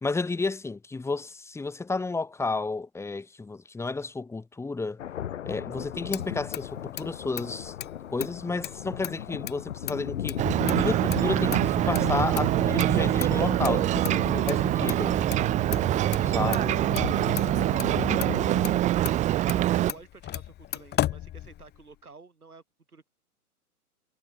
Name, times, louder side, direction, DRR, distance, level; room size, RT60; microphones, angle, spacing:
voice 1, 0.0-5.0 5.5-7.7 8.1-10.4 10.8-15.1 16.3-16.8, left 3 dB, 5° left, 2.1 m, -32 dB
sound 1, 5.0-18.8, left 10 dB, 55° left, 5.6 m, -36 dB
Motor vehicle (road), 5.7-22.0, left 13 dB, 20° left, 3.4 m, -38 dB
Ocean, 10.4-19.9, right 14 dB, 15° right, 0.9 m, -24 dB
voice 2, 19.5-22.6 22.9-23.1, right 4 dB, 75° right, 7.6 m, -51 dB
figure-of-eight pair, 110°, 45 cm